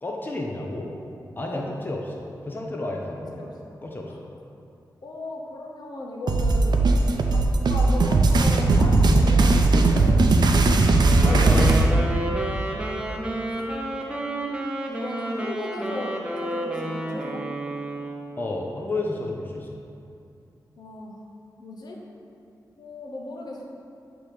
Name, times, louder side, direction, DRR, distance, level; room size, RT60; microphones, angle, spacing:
voice 1, 0.0-1.0 1.4-3.3 3.8-4.1 11.2-12.1 18.4-19.7, left 2 dB, 25° left, -1 dB, 0.6 m, -31 dB
voice 2, 5.0-6.8 7.3-7.4 7.7-9.6 9.9-10.3 13.0-13.1 14.9-16.1 16.4-17.4 20.8-21.2 21.6-22.0 22.8-23.7, left 2 dB, 70° left, -1 dB, 0.8 m, -36 dB
sound 1, 6.3-11.9, right 2 dB, 75° right, 0.5 m, -18 dB
Wind instrument woodwind instrument, 11.0-18.5, right 1 dB, 15° right, 0.7 m, -30 dB
8.0 x 3.0 x 4.9 m, 2.6 s
wide cardioid pair, 85°, 7 cm